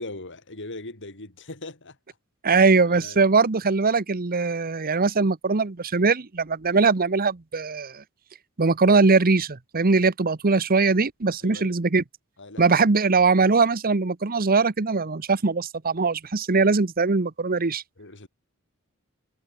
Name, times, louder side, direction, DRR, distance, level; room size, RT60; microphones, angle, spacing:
voice 1, 0.0-2.0 2.9-3.2 11.4-11.8 12.4-12.7 18.0-18.3, left 2 dB, 55° left, 4.4 m, -39 dB
voice 2, 2.4-8.0 8.6-12.0 12.6-17.8, right 4 dB, 40° right, 0.9 m, -21 dB
head